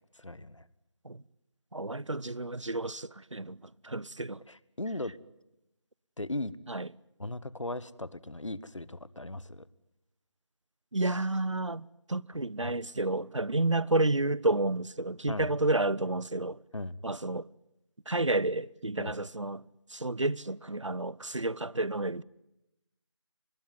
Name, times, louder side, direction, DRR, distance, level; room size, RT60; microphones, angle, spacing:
voice 1, 0.1-0.6 4.5-5.1 6.2-6.5 7.2-9.7 12.6-12.7 15.3-15.5 16.7-17.0 19.0-19.2, left 2 dB, 85° left, 1.3 m, -37 dB
voice 2, 1.7-4.4 6.7-6.9 10.9-16.6 17.0-17.5 18.1-22.2, right 2 dB, 90° right, 0.9 m, -30 dB
24.5 x 20.5 x 9.6 m
figure-of-eight pair, 165°, 15 cm